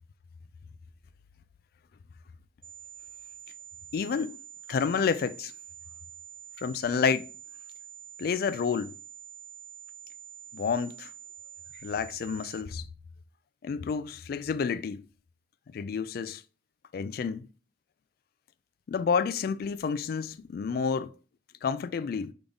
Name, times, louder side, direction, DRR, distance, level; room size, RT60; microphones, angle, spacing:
sound 1, 2.6-12.6, right 9 dB, 30° right, 0.5 m, -47 dB
voice 1, 3.9-4.4 4.7-5.5 6.6-7.3 8.2-9.0 10.5-11.1 11.8-12.9 13.6-15.1 15.7-16.4 16.9-17.5 18.9-21.2 21.6-22.3, left 6 dB, 55° left, 0.3 m, -29 dB
3.8 x 3.4 x 3.5 m
head